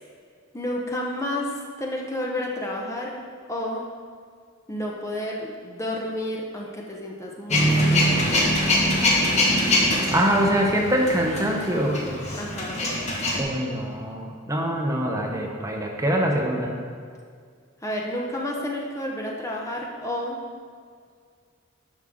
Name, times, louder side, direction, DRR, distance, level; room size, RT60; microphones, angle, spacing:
voice 1, 0.5-3.2 3.5-3.8 4.7-8.2 12.3-12.8 17.8-20.4, left 1 dB, 15° left, -2 dB, 0.8 m, -31 dB
Male speech man speaking / Vehicle / Engine starting, 7.5-13.4, left 1 dB, 35° left, 1.3 m, -23 dB
voice 2, 10.1-12.1 13.4-16.7, equal, 15° right, 0 dB, 0.8 m, -24 dB
11.0 x 6.2 x 3.6 m, 2.1 s
head